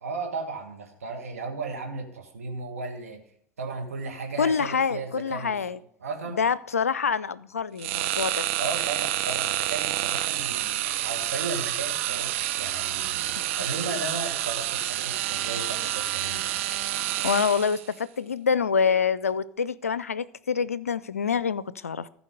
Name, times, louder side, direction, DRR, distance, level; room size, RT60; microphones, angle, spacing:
voice 1, 0.0-3.2 3.6-6.4 8.6-16.6, right 3 dB, 80° right, 1.6 m, -35 dB
voice 2, 4.4-5.8 6.3-8.5 17.2-22.1, left 6 dB, 85° left, 0.4 m, -26 dB
sound 1, 7.8-17.9, right 13 dB, 60° right, 0.6 m, -29 dB
14.5 x 4.9 x 5.2 m
figure-of-eight pair, 75°, 8 cm